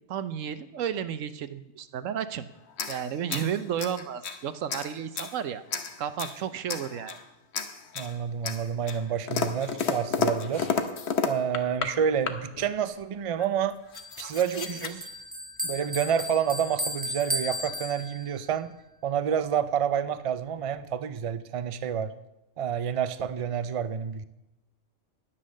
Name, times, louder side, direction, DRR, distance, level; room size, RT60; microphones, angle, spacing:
voice 1, 0.1-2.5 2.9-5.6 6.0-7.2, right 9 dB, 80° right, 12 dB, 1.1 m, -32 dB
sound 1, 2.7-4.4 4.7-5.4 5.7-6.4 6.7-7.3 7.5-8.1 8.4-11.9 12.2-12.7 13.4-13.5 13.7-14.9, left 6 dB, 60° left, 1.2 m, -32 dB
voice 2, 8.0-10.7 11.2-13.8 14.2-15.1 15.6-18.7 19.0-22.1 22.6-24.2, right 8 dB, 45° right, 13 dB, 0.4 m, -29 dB
Bell, 13.9-18.5, equal, 10° right, 0.8 m, -35 dB
10.5 x 10.0 x 6.4 m, 0.93 s
omnidirectional pair, 1.3 m